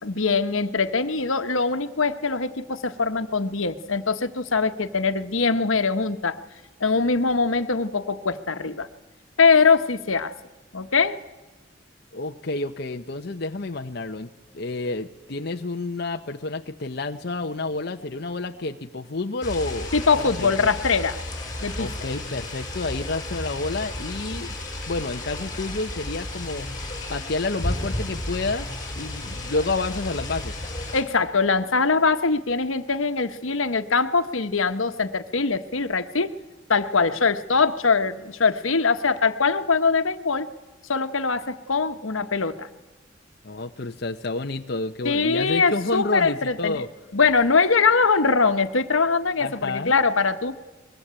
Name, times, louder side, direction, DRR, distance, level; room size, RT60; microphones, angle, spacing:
voice 1, 0.0-6.4 6.8-8.9 9.4-10.3 10.7-11.2 19.9-21.2 21.6-21.9 30.9-36.3 36.7-40.5 40.9-42.7 45.0-46.8 47.1-50.5, left 4 dB, 90° left, 9 dB, 1.3 m, -22 dB
voice 2, 12.1-14.3 14.5-19.9 20.2-20.7 21.8-24.5 24.9-26.7 27.1-28.7 29.0-30.6 43.4-46.9 49.4-50.0, left 3 dB, 55° left, 5 dB, 0.8 m, -29 dB
sound 1, 19.4-31.0, left 1 dB, 20° left, 5.7 m, -33 dB
24.0 x 21.5 x 8.9 m, 1.2 s
head